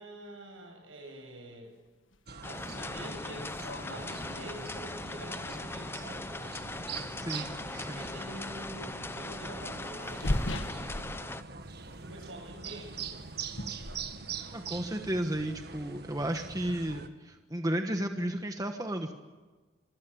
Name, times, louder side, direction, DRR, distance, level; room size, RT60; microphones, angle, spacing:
voice 1, 0.0-1.7 2.5-3.5 3.9-6.4 7.8-11.0 12.0-13.1, right 1 dB, 80° right, 2 dB, 7.9 m, -46 dB
sound 1, 2.1-2.2 2.6-4.6 5.7-5.8 7.6-7.9 8.2-8.3 9.9-11.7 12.0-12.3 12.6-14.6, left 1 dB, 75° left, 1.7 m, -38 dB
sound 2, 2.3-17.1, right 5 dB, 50° right, 1.6 m, -43 dB
sound 3, 2.4-11.4, left 2 dB, 10° left, 0.7 m, -40 dB
voice 2, 7.2-8.0 14.5-19.1, right 1 dB, 20° right, 5 dB, 1.3 m, -33 dB
26.0 x 16.5 x 8.9 m, 1.3 s
head